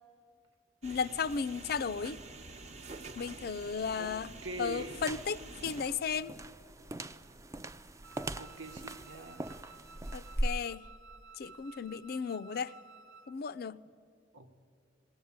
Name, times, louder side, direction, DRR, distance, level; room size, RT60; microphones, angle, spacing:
voice 1, 0.8-2.2 3.1-4.3 4.6-6.3 10.1-10.9 11.4-12.8 13.3-13.8, left 5 dB, 55° left, 0.4 m, -35 dB
sound 1, 0.8-5.8, right 3 dB, 35° right, 0.9 m, -48 dB
voice 2, 4.4-5.0 8.4-9.5 14.3-14.6, right 2 dB, 85° right, 1.3 m, -43 dB
sound 2, 4.8-10.5, right 1 dB, 15° right, 0.4 m, -40 dB
Wind instrument woodwind instrument, 8.0-13.4, right 4 dB, 60° right, 0.7 m, -55 dB
20.0 x 18.0 x 8.7 m
head